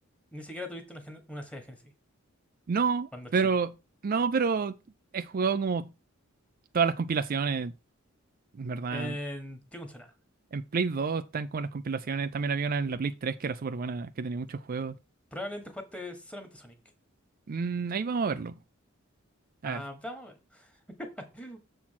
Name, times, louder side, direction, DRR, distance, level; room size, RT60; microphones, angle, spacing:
voice 1, 0.3-1.9 3.1-3.3 8.9-10.1 15.3-16.8 19.6-21.6, left 1 dB, 5° left, 1.6 m, -40 dB
voice 2, 2.7-3.7 4.0-4.8 5.1-5.9 6.7-7.7 8.6-9.2 10.5-14.9 17.5-18.6 19.6-19.8, right 5 dB, 45° right, 0.4 m, -29 dB
7.3 x 4.3 x 5.8 m
head